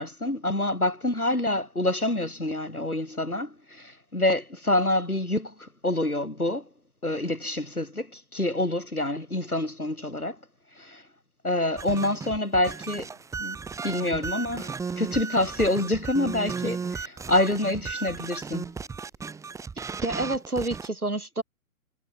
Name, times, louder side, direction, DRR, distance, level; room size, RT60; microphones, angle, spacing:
voice 1, 0.0-6.7 7.0-10.4 10.8-11.0 11.4-13.1 13.4-13.6 13.8-18.7, left 1 dB, 90° left, 3.5 m, -27 dB
sound 1, 11.8-20.9, right 5 dB, 5° right, 4.9 m, -35 dB
voice 2, 20.0-21.4, right 2 dB, 80° right, 7.7 m, -28 dB
figure-of-eight pair, 130°, 43 cm